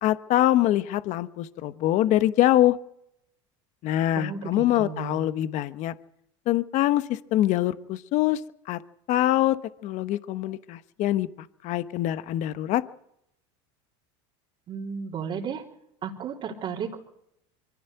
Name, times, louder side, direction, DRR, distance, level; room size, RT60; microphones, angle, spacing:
voice 1, 0.0-2.8 3.8-5.9 6.5-8.4 8.7-8.8 9.1-9.6 9.8-11.3 11.6-12.8, left 13 dB, 50° left, 13 dB, 1.1 m, -24 dB
voice 2, 4.2-5.3 14.7-15.6 16.0-17.0, right 6 dB, 40° right, -3 dB, 3.4 m, -34 dB
23.5 x 15.5 x 8.0 m, 0.77 s
supercardioid pair, 125°, 15 cm